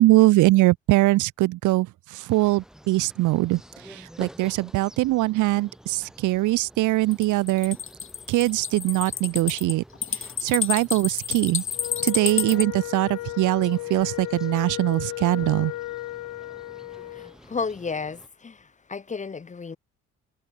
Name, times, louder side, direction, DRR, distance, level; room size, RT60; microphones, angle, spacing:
voice 1, 0.0-1.9 2.1-3.6 3.9-7.8 8.3-9.8 10.4-11.6 12.0-15.7, right 18 dB, 80° right, 0.5 m, -22 dB
sound 1, 2.3-18.3, equal, ahead, 3.5 m, -49 dB
sound 2, 7.1-12.6, left 8 dB, 45° left, 1.2 m, -29 dB
Wind instrument woodwind instrument, 11.7-17.3, left 17 dB, 90° left, 1.3 m, -34 dB
voice 2, 17.1-19.8, left 5 dB, 25° left, 0.8 m, -33 dB
cardioid pair, 90°, 30 cm